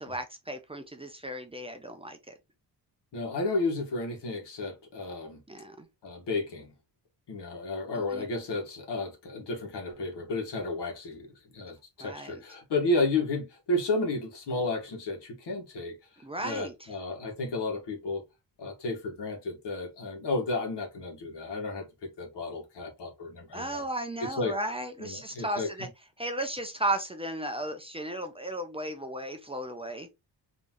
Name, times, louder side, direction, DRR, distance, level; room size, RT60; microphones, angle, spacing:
voice 1, 0.0-2.3 5.5-5.9 8.1-8.2 12.0-12.4 16.2-16.9 23.5-25.9 26.2-30.1, right 1 dB, 15° right, 0.6 m, -35 dB
voice 2, 3.1-5.4 6.0-6.7 7.3-16.0 16.4-18.2 18.6-23.8 24.2-24.5 25.0-25.9, left 2 dB, 80° left, 1.9 m, -32 dB
3.9 x 3.3 x 3.0 m
wide cardioid pair, 150°, 41 cm